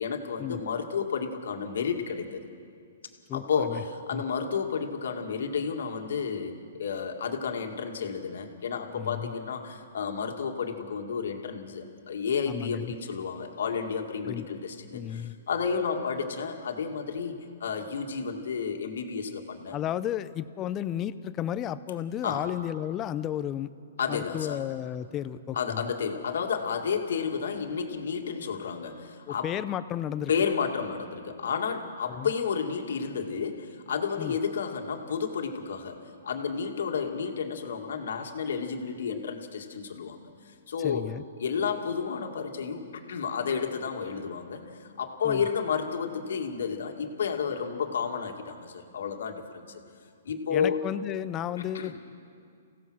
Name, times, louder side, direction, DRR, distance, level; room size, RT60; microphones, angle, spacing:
voice 1, 0.0-2.5 3.3-19.8 22.2-22.5 24.0-24.6 25.5-29.5 30.3-36.0 36.2-41.1 41.4-49.8 50.3-50.8 51.7-51.9, left 6 dB, 75° left, 3 dB, 2.1 m, -31 dB
voice 2, 3.3-3.8 4.1-4.2 8.9-9.3 12.5-12.9 14.3-14.5 14.9-15.4 19.7-23.7 24.1-25.9 29.3-30.3 32.1-32.3 34.2-34.4 40.8-41.2 45.2-45.5 50.5-52.0, left 10 dB, 25° left, 14 dB, 0.6 m, -33 dB
28.5 x 16.5 x 6.3 m, 2.3 s
hypercardioid pair, 145°, 0 cm